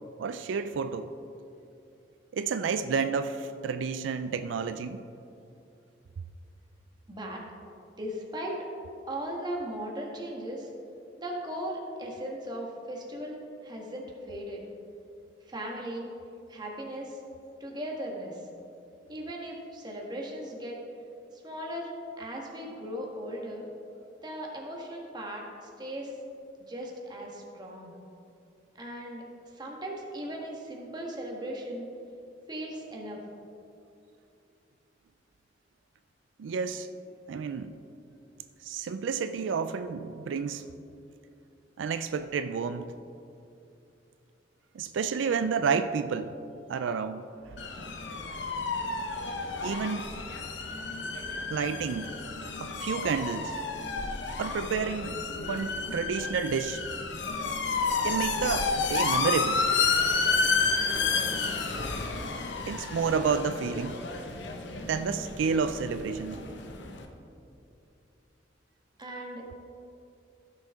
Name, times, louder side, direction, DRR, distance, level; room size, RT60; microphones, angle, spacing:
voice 1, 0.2-1.1 2.3-5.0 36.4-36.9 37.3-37.7 38.6-40.7 41.8-42.9 44.7-46.3 46.7-47.6 49.6-50.1 51.5-52.1 52.6-53.5 54.4-56.8 58.0-59.7 62.7-64.0 64.9-66.5, right 5 dB, 85° right, 10 dB, 0.4 m, -30 dB
voice 2, 7.1-7.4 8.0-8.6 9.1-10.7 11.2-14.6 15.5-16.1 16.5-17.2 17.6-18.4 19.1-20.8 21.3-21.9 22.2-23.7 24.2-26.2 26.7-27.9 28.8-29.2 29.5-31.9 32.5-33.2 69.0-69.6, right 1 dB, 25° right, -1 dB, 1.5 m, -37 dB
sound 1, 47.6-67.1, left 4 dB, 70° left, 0.9 m, -31 dB
15.5 x 6.5 x 3.6 m, 2.6 s
head